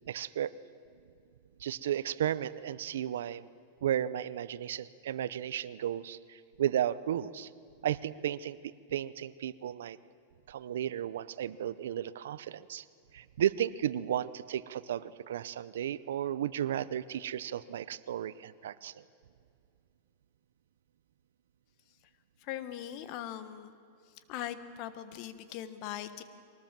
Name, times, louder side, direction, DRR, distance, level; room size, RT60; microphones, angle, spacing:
voice 1, 0.1-0.5 1.6-3.5 3.8-7.5 7.8-8.6 8.9-10.0 10.5-12.8 13.1-19.0, right 10 dB, 85° right, 17 dB, 0.7 m, -34 dB
voice 2, 22.4-23.7 24.3-26.2, left 11 dB, 45° left, 12 dB, 1.3 m, -40 dB
23.0 x 19.0 x 7.5 m, 2.4 s
supercardioid pair, 145°, 0 cm